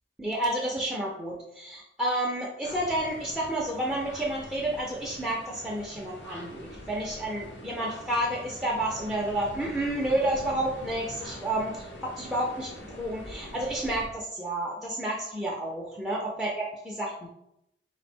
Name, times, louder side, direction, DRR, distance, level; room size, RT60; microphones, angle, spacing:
voice 1, 0.2-17.3, right 1 dB, 5° right, -4 dB, 0.4 m, -30 dB
sound 1, 2.6-14.1, left 1 dB, 80° left, 0.8 m, -44 dB
3.6 x 2.1 x 4.2 m, 0.80 s
head